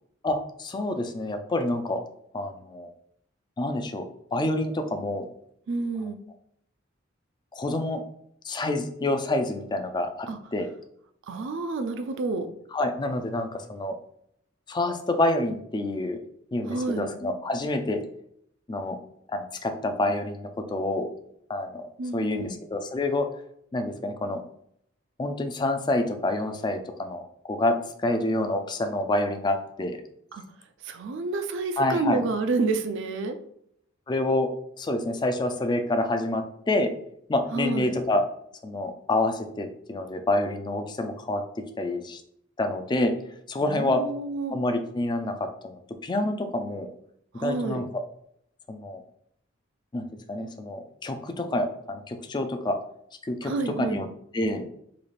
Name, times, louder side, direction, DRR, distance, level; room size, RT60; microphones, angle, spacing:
voice 1, 0.2-2.0 2.3-2.9 3.6-4.1 4.3-5.3 7.5-8.0 8.4-10.7 12.7-13.9 14.7-16.2 16.5-18.0 18.7-19.0 19.3-21.1 21.5-23.3 23.7-24.4 25.2-27.8 28.0-30.0 31.8-32.2 34.1-34.5 34.8-36.9 37.3-38.2 38.6-41.4 41.8-42.2 42.6-43.1 43.5-44.0 44.5-45.3 45.6-46.9 47.4-47.9 48.7-49.0 49.9-52.8 53.3-54.1 54.3-54.6, left 2 dB, 20° left, 7 dB, 0.4 m, -27 dB
voice 2, 5.7-6.2 10.3-10.4 11.3-12.5 16.7-17.1 22.0-22.6 30.3-30.4 30.8-33.4 37.5-37.9 43.6-44.6 47.4-47.8 53.4-54.0, right 3 dB, 65° right, 8 dB, 0.4 m, -29 dB
3.9 x 2.4 x 3.2 m, 0.71 s
head